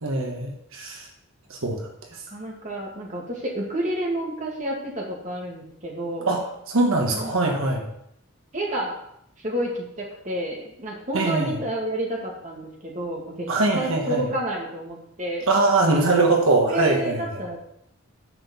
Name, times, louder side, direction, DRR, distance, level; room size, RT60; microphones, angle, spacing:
voice 1, 0.0-1.1 1.5-1.9 6.3-7.9 11.1-11.6 13.5-14.2 15.5-17.4, right 2 dB, 75° right, 1 dB, 1.4 m, -22 dB
voice 2, 2.1-6.3 7.1-7.7 8.5-9.0 9.4-15.5 16.6-17.6, right 1 dB, 35° right, -2 dB, 2.0 m, -30 dB
10.5 x 4.4 x 7.0 m, 0.77 s
head